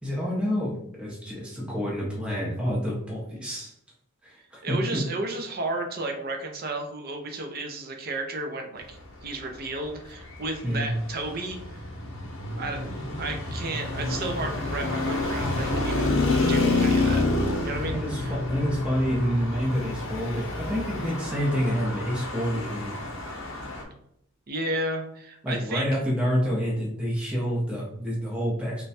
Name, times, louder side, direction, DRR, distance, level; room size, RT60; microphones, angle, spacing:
voice 1, 0.0-3.7 4.2-5.0 10.6-10.9 17.9-23.1 25.4-28.8, equal, 5° right, -5 dB, 0.7 m, -28 dB
voice 2, 4.6-11.8 12.6-16.1 16.5-17.2 17.6-18.3 24.5-25.9, right 2 dB, 45° right, 4 dB, 0.6 m, -33 dB
Traffic noise roadway noise, 10.1-23.8, left 2 dB, 65° left, 0.8 m, -28 dB
3.3 x 2.2 x 4.1 m, 0.72 s
head